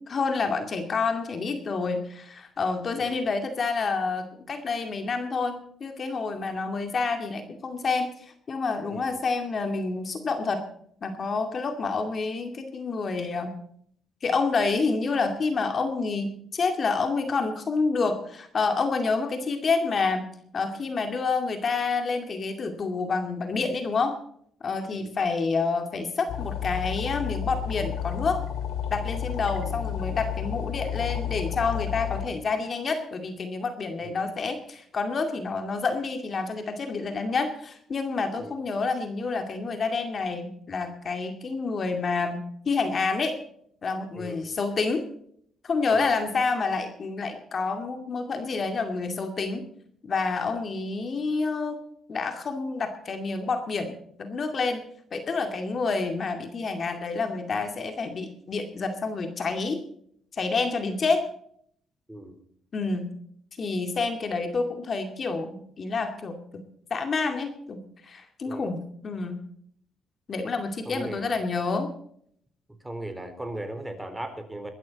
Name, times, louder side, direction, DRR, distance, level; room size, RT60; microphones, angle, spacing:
voice 1, 0.0-10.6 11.0-13.6 14.2-20.2 20.5-24.2 24.6-28.4 28.9-43.4 43.8-45.1 45.6-49.7 50.0-51.8 52.1-53.9 54.2-54.8 55.1-59.8 60.3-61.2 62.7-63.1 63.6-66.4 66.9-69.4 70.3-71.9, left 4 dB, 45° left, 6 dB, 2.3 m, -28 dB
sound 1, 26.3-32.3, left 9 dB, 85° left, 2.2 m, -31 dB
voice 2, 44.1-44.5 45.9-46.1 62.1-62.3 68.5-68.7 70.9-71.3 72.8-74.7, right 1 dB, 10° right, 7 dB, 3.8 m, -38 dB
22.0 x 12.5 x 4.1 m, 0.65 s
cardioid pair, 90°, 0 cm